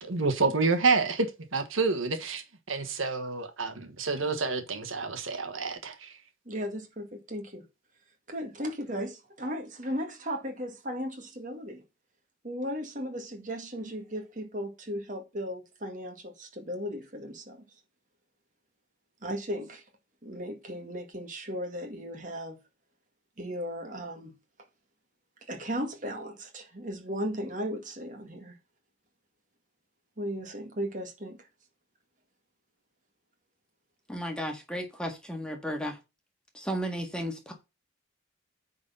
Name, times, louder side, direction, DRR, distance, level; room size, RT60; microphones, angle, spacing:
voice 1, 0.0-6.1, right 4 dB, 75° right, 1.5 m, -28 dB
voice 2, 6.5-7.6 8.3-11.8 12.4-17.6 19.2-19.8 20.2-22.6 23.4-24.3 25.5-28.5 30.2-31.4, equal, 40° right, 1.9 m, -36 dB
voice 3, 34.1-36.0 36.5-37.5, equal, 5° left, 1.6 m, -34 dB
9.5 x 4.1 x 5.5 m
head